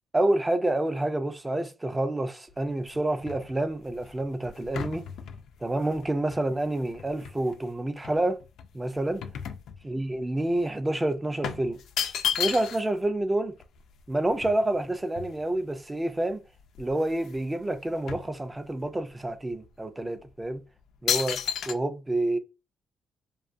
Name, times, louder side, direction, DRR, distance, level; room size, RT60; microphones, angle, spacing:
voice 1, 0.1-5.1 5.6-8.4 8.7-9.3 9.8-11.8 12.4-13.6 14.1-16.4 16.8-20.6 21.0-22.4, right 1 dB, 15° right, 0.4 m, -28 dB
sound 1, 2.5-7.6 8.0-10.2 10.5-10.7 11.4-13.0 13.3-13.4 13.6-15.8 16.3-16.4 16.7-17.4 17.7-18.9 19.5-19.7 20.3-20.6 21.1-21.7, left 8 dB, 75° left, 0.3 m, -34 dB
2.5 x 2.3 x 2.4 m
cardioid pair, 90°, 0 cm